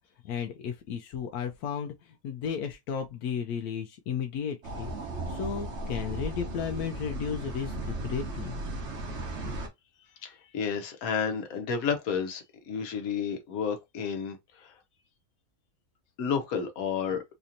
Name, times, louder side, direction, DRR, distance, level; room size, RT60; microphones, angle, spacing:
voice 1, 0.2-4.9 5.3-8.6, left 7 dB, 85° left, 1.1 m, -34 dB
sound 1, 4.6-9.7, right 2 dB, 55° right, 1.2 m, -36 dB
voice 2, 10.2-14.7 16.2-17.2, left 6 dB, 70° left, 1.3 m, -31 dB
4.1 x 2.8 x 2.5 m
omnidirectional pair, 1.6 m